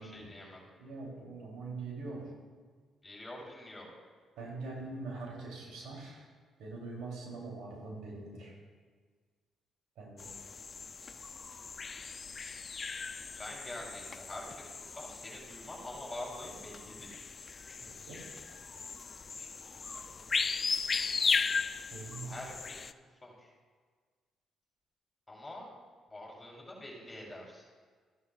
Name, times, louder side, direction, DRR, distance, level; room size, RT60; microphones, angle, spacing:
voice 1, 0.0-0.7 3.0-3.9 13.3-17.2 19.4-20.3 20.8-21.2 22.3-22.9 23.2-23.5 25.3-25.7 26.1-27.6, left 1 dB, 20° left, -2 dB, 3.4 m, -46 dB
voice 2, 0.8-2.3 4.4-6.2 6.6-8.5 10.0-10.3 17.9-18.4 21.9-22.3, right 3 dB, 85° right, -2 dB, 3.1 m, -43 dB
sound 1, 10.2-22.9, left 5 dB, 40° left, 0.3 m, -37 dB
14.0 x 11.0 x 2.4 m, 1.6 s
cardioid pair, 90°, 0 cm